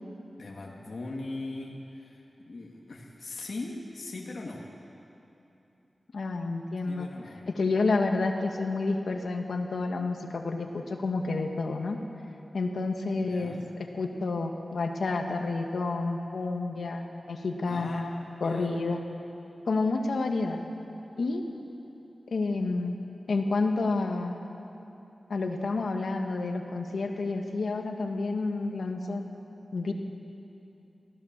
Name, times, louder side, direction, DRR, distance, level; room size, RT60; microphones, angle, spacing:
voice 1, 0.4-4.6 6.9-7.4 13.2-13.7 17.7-18.1 18.4-18.7 22.0-22.1, left 2 dB, 65° left, -2 dB, 2.1 m, -40 dB
voice 2, 6.1-7.1 7.6-12.0 12.5-13.6 13.9-18.1 18.4-19.0 19.7-20.6 21.2-21.4 22.3-23.0 23.3-24.4 25.3-29.2 29.7-29.9, left 3 dB, 80° left, 3 dB, 1.8 m, -29 dB
23.5 x 16.0 x 7.5 m, 3.0 s
wide cardioid pair, 100°, 0 cm